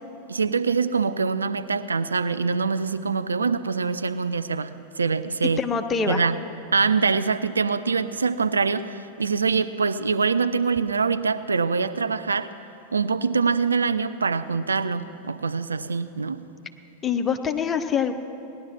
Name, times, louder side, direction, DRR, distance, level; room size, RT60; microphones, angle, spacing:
voice 1, 0.3-5.6 6.1-6.4 6.7-12.5 12.9-16.4, right 5 dB, 75° right, 11 dB, 0.4 m, -24 dB
voice 2, 5.4-6.2 17.0-18.1, left 6 dB, 20° left, 6 dB, 0.9 m, -25 dB
18.0 x 11.0 x 6.0 m, 2.8 s
figure-of-eight pair, 90°, 0 cm